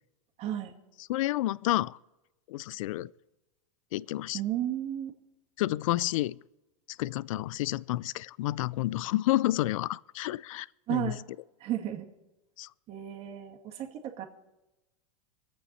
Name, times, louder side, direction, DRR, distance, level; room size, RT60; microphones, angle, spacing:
voice 1, 0.4-0.7 4.3-5.1 10.9-11.2 11.6-12.1 12.9-14.3, right 11 dB, 35° right, 2.2 m, -33 dB
voice 2, 1.1-2.0 2.5-3.1 3.9-4.4 5.6-6.4 7.0-11.1 12.6-12.7, left 16 dB, 70° left, 0.4 m, -30 dB
24.5 x 8.6 x 4.2 m
hypercardioid pair, 125°, 18 cm